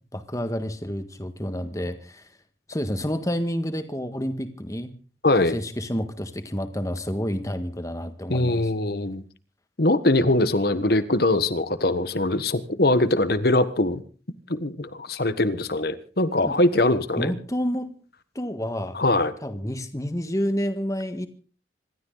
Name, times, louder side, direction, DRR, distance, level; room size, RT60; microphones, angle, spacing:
voice 1, 0.1-2.3 2.7-4.9 5.5-8.7 16.4-16.5 17.2-17.9 18.3-19.0 19.4-21.3, equal, 15° left, 9 dB, 1.6 m, -29 dB
voice 2, 5.2-5.5 8.3-9.2 9.8-14.0 14.5-17.3 18.9-19.3, left 2 dB, 55° left, 13 dB, 1.3 m, -22 dB
26.5 x 13.0 x 4.0 m, 0.38 s
head